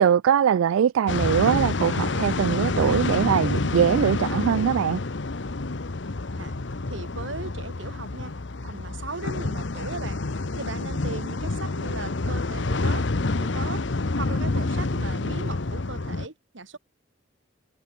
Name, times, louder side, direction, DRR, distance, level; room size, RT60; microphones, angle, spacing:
voice 1, 0.0-5.0, right 8 dB, 85° right, 0.3 m, -22 dB
sound 1, 1.1-16.3, left 3 dB, 60° left, 0.9 m, -28 dB
voice 2, 6.9-8.3 8.6-10.2 10.5-13.8 14.1-16.8, right 3 dB, 70° right, 2.2 m, -37 dB
head